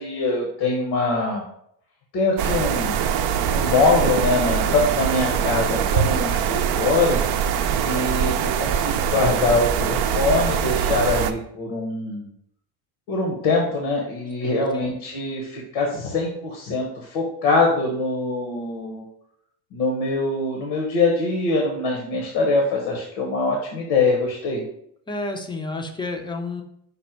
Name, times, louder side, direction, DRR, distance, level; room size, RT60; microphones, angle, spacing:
voice 1, 0.0-1.4 2.1-2.9 3.5-7.2 7.8-12.3 13.1-19.1 19.7-24.6, left 3 dB, 75° left, 0 dB, 1.0 m, -23 dB
sound 1, 2.4-11.3, right 8 dB, 55° right, 0.5 m, -23 dB
voice 2, 14.4-14.9 25.1-26.6, left 2 dB, 10° left, 4 dB, 0.5 m, -31 dB
5.2 x 2.1 x 4.3 m, 0.72 s
supercardioid pair, 100°, 49 cm